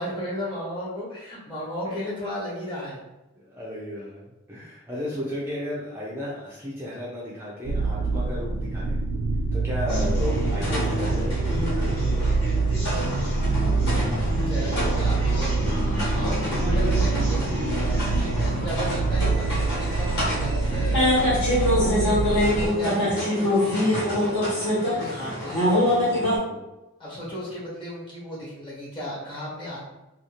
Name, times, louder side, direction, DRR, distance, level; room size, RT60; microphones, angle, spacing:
voice 1, 0.0-3.0 13.6-15.6 15.8-25.7 27.0-29.8, equal, 25° left, -8 dB, 1.1 m, -35 dB
voice 2, 3.4-9.0 9.5-11.7 26.5-26.6, left 1 dB, 10° right, -7 dB, 0.4 m, -34 dB
sound 1, 7.6-22.7, right 3 dB, 85° right, 0.3 m, -25 dB
sound 2, 9.9-26.4, left 1 dB, 55° left, 1.2 m, -26 dB
2.5 x 2.4 x 2.9 m, 1.0 s
head